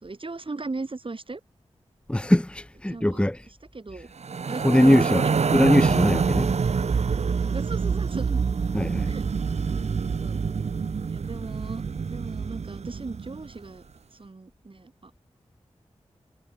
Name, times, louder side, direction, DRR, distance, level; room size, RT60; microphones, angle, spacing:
voice 1, 0.0-1.4 2.9-3.3 3.7-4.1 4.5-5.6 7.4-8.4 9.0-9.3 10.2-10.4 10.8-11.8 12.1-13.8 14.1-15.1, right 3 dB, 45° right, 5.3 m, -37 dB
voice 2, 2.1-3.5 4.6-6.5 8.7-9.1, left 1 dB, 10° left, 1.0 m, -21 dB
sound 1, 4.2-13.5, right 5 dB, 65° right, 1.0 m, -26 dB
cardioid pair, 40°, 12 cm